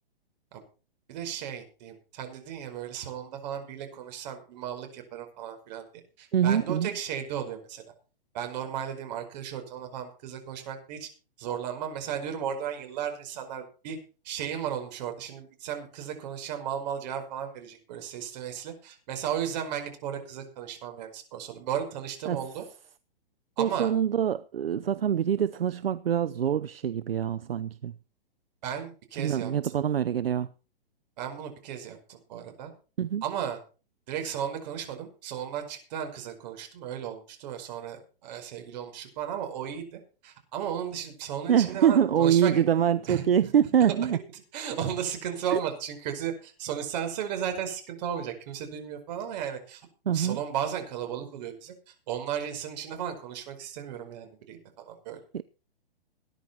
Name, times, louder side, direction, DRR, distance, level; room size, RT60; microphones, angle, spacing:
voice 1, 1.1-5.8 6.2-7.8 8.3-11.1 11.4-14.0 14.2-22.6 23.6-23.9 28.6-29.7 31.2-32.7 33.2-33.6 34.1-42.6 43.1-43.2 44.0-49.8 50.1-55.2, right 9 dB, 45° right, 4.9 m, -35 dB
voice 2, 6.3-6.9 22.3-22.4 23.6-27.9 29.2-30.5 33.0-33.2 41.5-44.2 45.5-45.6 50.1-50.4 55.3-55.4, right 9 dB, 75° right, 0.7 m, -25 dB
19.0 x 10.5 x 4.4 m
hypercardioid pair, 125°, 30 cm